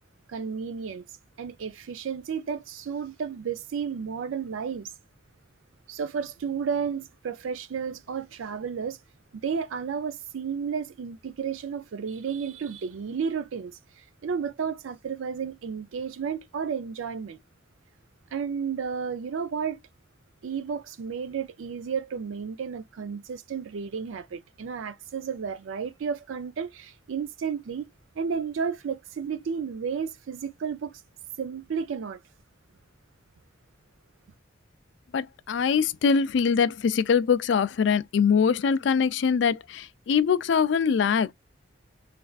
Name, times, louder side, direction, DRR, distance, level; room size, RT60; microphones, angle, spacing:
voice 1, 0.3-1.0 1.4-4.9 5.9-9.0 9.4-17.4 18.3-19.8 20.4-27.9 28.2-31.0 31.4-32.2, right 6 dB, 80° right, 0.4 m, -32 dB
voice 2, 35.1-41.3, left 6 dB, 65° left, 0.3 m, -23 dB
3.3 x 2.4 x 2.3 m
head